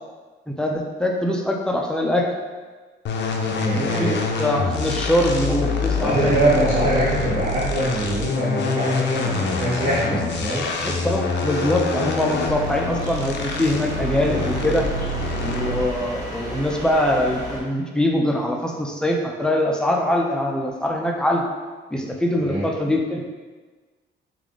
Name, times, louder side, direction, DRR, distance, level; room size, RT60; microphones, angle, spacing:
voice 1, 0.5-2.3 3.7-4.1 4.4-6.7 10.1-10.2 10.8-14.9 15.4-21.4 21.9-23.2, left 1 dB, 5° left, 0 dB, 0.5 m, -23 dB
sound 1, 3.1-16.0, left 3 dB, 60° left, 0.5 m, -26 dB
voice 2, 3.5-4.2 6.0-10.2 10.4-10.7 22.4-22.6, right 1 dB, 50° right, -11 dB, 1.2 m, -23 dB
sound 2, 12.3-17.6, equal, 20° right, 1.4 m, -35 dB
3.4 x 2.4 x 3.6 m, 1.3 s
cardioid pair, 90°, 20 cm